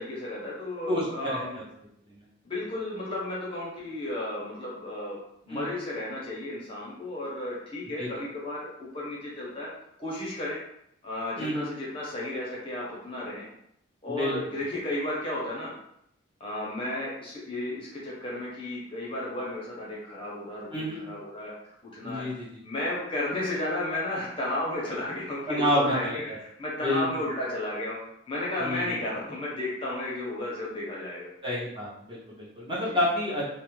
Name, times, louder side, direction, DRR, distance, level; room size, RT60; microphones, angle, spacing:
voice 1, 0.0-1.6 2.4-5.2 5.4-9.7 10.0-10.6 11.0-13.5 14.0-15.7 16.4-21.5 21.9-22.2 22.6-28.0 28.3-31.3 32.9-33.0, left 1 dB, 25° left, -5 dB, 0.6 m, -33 dB
voice 2, 0.9-1.6 2.1-2.2 5.5-5.8 8.0-8.1 11.4-11.7 14.1-14.4 20.7-21.0 22.0-22.5 25.5-26.4 26.8-27.0 28.6-29.0 31.4-33.5, equal, 25° right, -6 dB, 0.7 m, -29 dB
2.4 x 2.0 x 3.0 m, 0.75 s
head